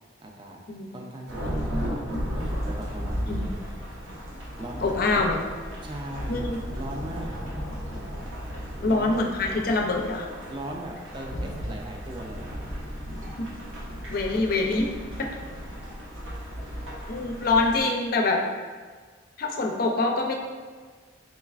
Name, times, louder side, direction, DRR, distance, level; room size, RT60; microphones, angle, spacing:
voice 1, 0.2-0.6 0.9-4.0 4.4-4.8 5.1-5.3 5.8-6.4 6.7-7.4 7.9-8.1 8.5-9.2 10.5-12.6 12.9-13.1, right 1 dB, 25° right, 0 dB, 0.3 m, -39 dB
Thunderstorm / Rain, 1.3-17.8, equal, 85° right, 0.9 m, -35 dB
voice 2, 4.8-5.4 6.3-6.6 8.8-10.3 13.4-13.5 14.1-14.9 17.1-18.4 19.4-20.3, left 3 dB, 45° left, 2 dB, 0.4 m, -25 dB
3.9 x 3.1 x 2.4 m, 1.5 s
head